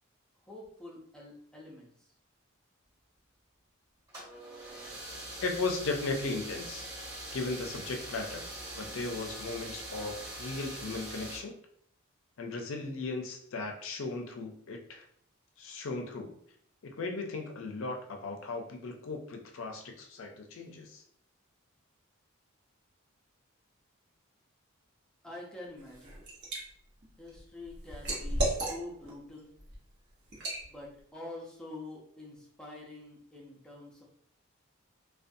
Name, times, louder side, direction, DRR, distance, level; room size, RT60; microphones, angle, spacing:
voice 1, 0.5-2.1 25.2-26.2 27.2-29.6 30.7-34.0, left 2 dB, 5° left, -4 dB, 0.5 m, -46 dB
sound 1, 4.1-11.4, right 1 dB, 20° right, 0.9 m, -43 dB
voice 2, 5.4-6.9 7.3-8.5 8.7-11.6 12.4-15.0 15.6-16.3 16.8-21.0, left 3 dB, 65° left, 3 dB, 0.4 m, -36 dB
Liquid, 25.8-26.6 27.0-29.1 29.6-29.8 30.3-30.6, right 1 dB, 50° right, 0.8 m, -33 dB
2.5 x 2.2 x 2.5 m, 0.64 s
head